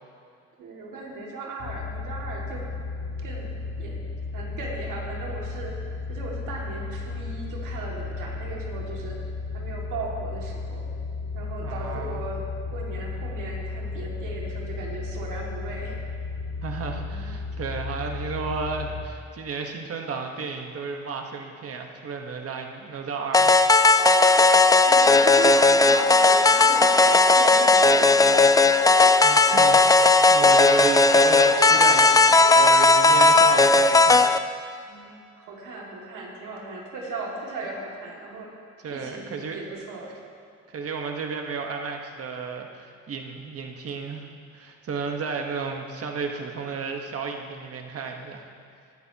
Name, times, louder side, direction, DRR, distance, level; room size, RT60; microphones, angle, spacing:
voice 1, 0.6-2.6 3.2-4.0 4.3-5.8 6.1-9.2 9.5-10.8 11.3-16.0 24.8-28.7 34.9-40.1, right 3 dB, 85° right, -2 dB, 2.4 m, -37 dB
sound 1, 1.6-19.1, left 3 dB, 70° left, 1.0 m, -34 dB
voice 2, 11.6-12.2 16.6-23.6 29.2-34.3 38.8-39.6 40.7-48.5, right 4 dB, 50° right, 3 dB, 1.4 m, -33 dB
sound 2, 23.3-34.4, left 3 dB, 10° left, 0.3 m, -16 dB
19.0 x 11.0 x 3.0 m, 2.4 s
cardioid pair, 90°, 30 cm